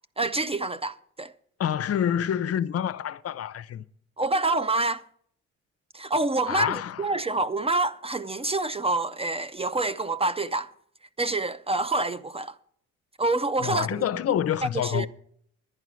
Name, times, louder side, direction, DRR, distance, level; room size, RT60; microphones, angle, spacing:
voice 1, 0.2-1.3 4.2-5.0 5.9-10.7 11.2-12.6 13.2-14.0 14.8-15.1, right 2 dB, 20° right, 0.4 m, -27 dB
voice 2, 1.6-3.8 6.5-7.1 13.6-15.1, left 9 dB, 50° left, 0.6 m, -27 dB
11.0 x 9.6 x 6.2 m
cardioid pair, 90°, 30 cm